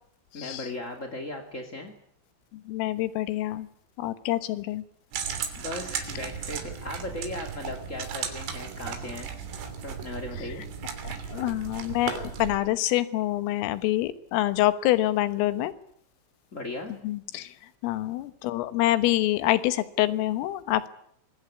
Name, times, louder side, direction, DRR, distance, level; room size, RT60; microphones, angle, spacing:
voice 1, 0.3-1.9 5.6-9.3 9.8-10.6 16.5-16.9, left 2 dB, 35° left, 4 dB, 1.2 m, -37 dB
voice 2, 2.5-3.7 4.0-4.8 11.0-15.7 17.0-17.5 17.8-20.9, left 15 dB, 90° left, 12 dB, 3.9 m, -26 dB
sound 1, 5.1-12.6, right 7 dB, 70° right, 5.4 m, -35 dB
25.0 x 22.0 x 9.6 m, 0.67 s
omnidirectional pair, 5.7 m